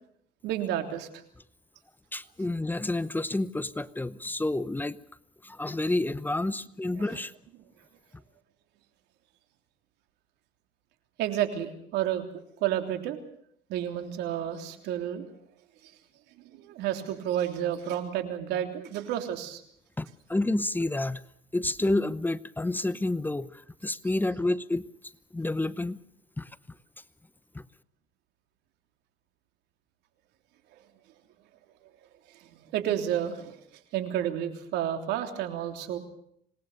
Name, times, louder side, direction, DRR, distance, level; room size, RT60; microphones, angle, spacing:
voice 1, 0.4-1.2 7.1-7.2 11.2-13.2 13.7-15.3 15.8-15.9 16.5-19.6 32.3-33.6 33.9-36.0, right 11 dB, 90° right, 6 dB, 3.4 m, -31 dB
voice 2, 2.1-5.0 5.4-7.3 20.0-21.2 21.5-24.9 25.3-26.0 26.4-26.5 27.5-27.6, left 2 dB, 10° left, 15 dB, 0.8 m, -29 dB
26.5 x 20.0 x 6.7 m, 0.70 s
cardioid pair, 110°, 17 cm